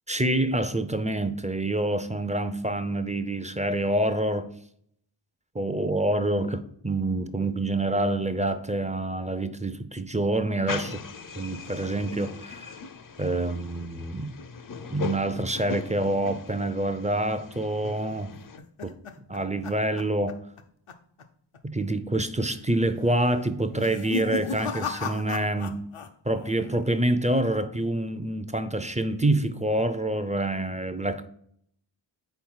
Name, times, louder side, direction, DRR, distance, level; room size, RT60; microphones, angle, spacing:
voice 1, 0.1-4.5 5.5-11.0 11.3-12.8 13.2-14.4 14.9-18.3 18.8-18.9 19.3-20.4 21.6-25.8 26.2-31.3, right 1 dB, 15° right, 0.4 m, -27 dB
sound 1, 10.7-18.6, left 5 dB, 45° left, 0.5 m, -39 dB
sound 2, 18.1-20.6 20.9-21.2 21.5-21.6 22.4-22.8 23.7-26.1 26.4-26.9, left 5 dB, 80° left, 0.7 m, -35 dB
4.6 x 4.2 x 5.5 m
wide cardioid pair, 50°, 49 cm